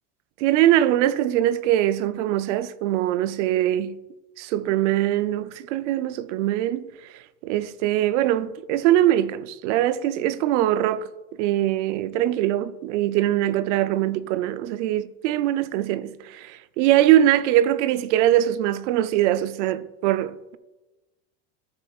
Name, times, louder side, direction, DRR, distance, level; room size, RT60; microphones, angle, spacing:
voice 1, 0.4-4.0 4.4-6.8 7.4-11.1 11.4-16.0 16.3-20.6, right 13 dB, 85° right, 0.6 m, -22 dB
14.5 x 6.7 x 2.4 m
cardioid pair, 170°, 35 cm